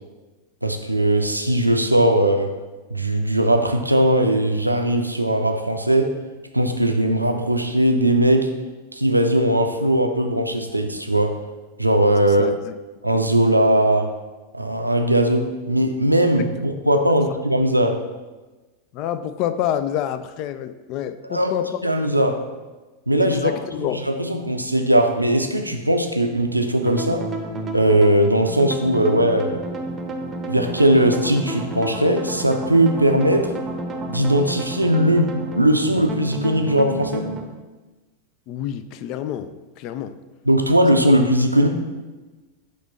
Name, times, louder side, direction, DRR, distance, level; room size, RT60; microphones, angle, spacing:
voice 1, 0.6-2.5 2.9-6.1 6.5-8.5 8.9-11.4 11.8-12.6 13.0-14.1 14.5-18.0 21.3-21.5 21.8-22.4 23.1-23.5 24.2-27.2 27.7-29.6 30.5-33.5 34.1-35.3 35.6-37.3 40.5-41.7, right 1 dB, 85° right, 5 dB, 0.5 m, -19 dB
voice 2, 12.3-12.7 18.9-22.2 23.2-24.0 38.5-39.5 39.8-40.2, left 10 dB, 40° left, 12 dB, 0.3 m, -27 dB
sound 1, 26.8-37.4, right 1 dB, 20° right, 0.7 m, -30 dB
6.0 x 2.9 x 5.3 m, 1.2 s
figure-of-eight pair, 90°, 0 cm